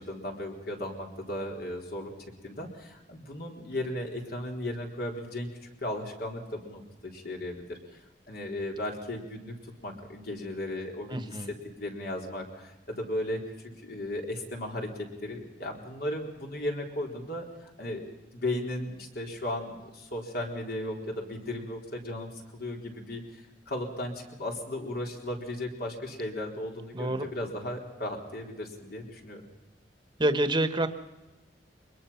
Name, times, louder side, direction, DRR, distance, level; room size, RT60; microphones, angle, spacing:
voice 1, 0.0-2.1 2.4-11.5 11.8-13.4 13.8-14.9 15.2-18.0 18.3-29.4, left 1 dB, 60° left, 1 dB, 4.1 m, -36 dB
voice 2, 11.1-11.5 26.9-27.3 30.2-30.9, right 1 dB, 25° right, 10 dB, 1.3 m, -27 dB
23.5 x 21.5 x 5.8 m, 1.0 s
head